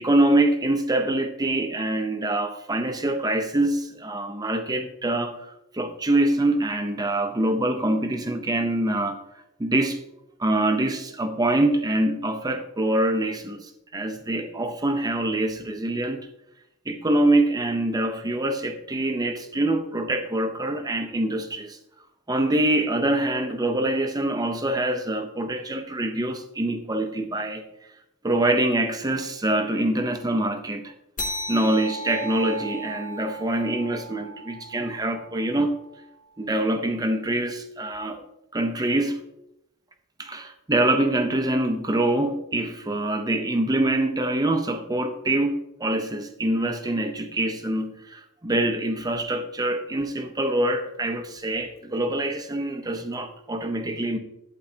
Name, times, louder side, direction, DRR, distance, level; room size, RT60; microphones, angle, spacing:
voice 1, 0.0-5.4 5.7-9.2 9.6-10.0 10.4-16.3 16.9-21.8 22.3-27.6 28.2-30.9 31.5-35.8 36.4-38.2 38.5-39.2 40.2-54.2, right 1 dB, 15° right, 0.6 m, -25 dB
sound 1, 31.2-36.1, equal, 35° left, 1.1 m, -36 dB
11.5 x 8.3 x 2.8 m
head